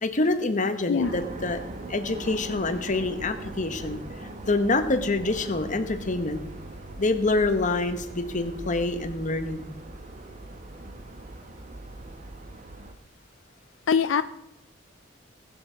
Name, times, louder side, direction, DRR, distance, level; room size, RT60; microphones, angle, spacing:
voice 1, 0.0-1.6 1.9-4.0 4.5-6.4 7.0-9.7, left 2 dB, 40° left, 9 dB, 1.1 m, -26 dB
sound 1, 1.0-12.9, right 1 dB, 40° right, 1.2 m, -40 dB
voice 2, 13.9-14.2, left 6 dB, 75° left, 13 dB, 0.4 m, -22 dB
20.0 x 7.0 x 5.1 m, 0.94 s
head